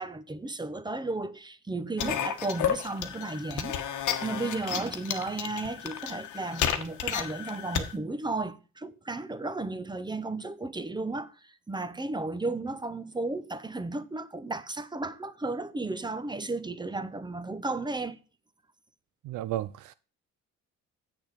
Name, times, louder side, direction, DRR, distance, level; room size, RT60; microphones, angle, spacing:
voice 1, 0.0-3.8 4.2-18.2, right 2 dB, 15° right, 0.8 m, -34 dB
sound 1, 2.0-7.9, left 9 dB, 85° left, 1.3 m, -32 dB
voice 2, 19.2-19.9, right 13 dB, 85° right, 0.5 m, -33 dB
7.9 x 7.0 x 5.1 m
cardioid pair, 90°, 30 cm